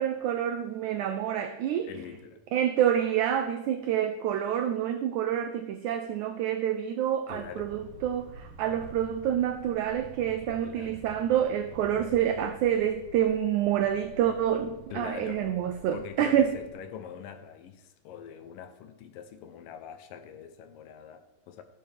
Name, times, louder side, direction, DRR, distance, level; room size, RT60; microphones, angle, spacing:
voice 1, 0.0-1.9 2.5-16.5, right 10 dB, 90° right, 6 dB, 1.7 m, -27 dB
voice 2, 1.8-2.4 7.3-7.8 10.6-11.1 14.9-15.6 15.9-21.6, left 8 dB, 80° left, 9 dB, 2.3 m, -43 dB
sound 1, 7.3-16.7, right 4 dB, 70° right, 2.6 m, -48 dB
17.0 x 6.8 x 3.4 m, 1.0 s
omnidirectional pair, 4.1 m